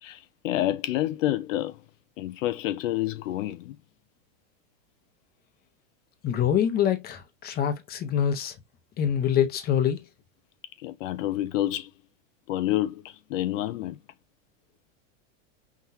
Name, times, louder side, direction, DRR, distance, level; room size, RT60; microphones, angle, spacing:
voice 1, 0.0-1.8 2.2-3.8 10.8-11.9 12.5-14.0, left 14 dB, 75° left, 0.6 m, -28 dB
voice 2, 6.2-8.5 9.0-10.0, left 9 dB, 25° left, 0.9 m, -25 dB
6.0 x 2.9 x 2.7 m
supercardioid pair, 145°, 39 cm